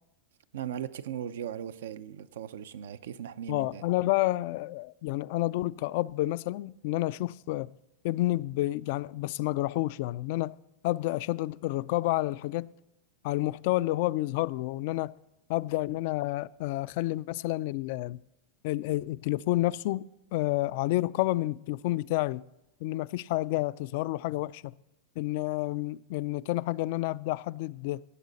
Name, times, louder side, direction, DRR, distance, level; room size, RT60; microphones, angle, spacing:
voice 1, 0.5-3.9, right 9 dB, 80° right, 0.6 m, -38 dB
voice 2, 3.5-7.7 8.0-10.6 10.8-12.7 13.2-15.1 15.5-18.2 18.6-22.4 22.8-24.7 25.2-28.0, left 17 dB, 60° left, 0.3 m, -30 dB
16.5 x 7.4 x 4.0 m
hypercardioid pair, 120°, 0 cm